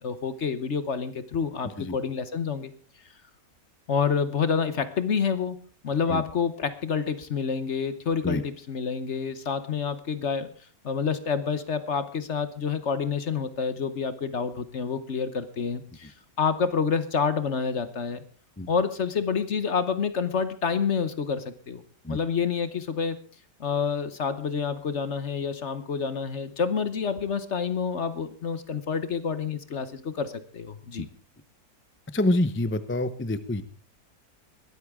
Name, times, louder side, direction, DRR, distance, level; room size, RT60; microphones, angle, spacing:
voice 1, 0.0-2.7 3.9-5.6 5.8-10.5 10.8-18.2 18.7-21.8 22.1-23.2 23.6-31.1, left 6 dB, 50° left, 12 dB, 1.1 m, -28 dB
voice 2, 32.1-33.6, left 1 dB, 15° left, 12 dB, 0.5 m, -26 dB
21.5 x 13.0 x 3.6 m, 0.38 s
omnidirectional pair, 1.8 m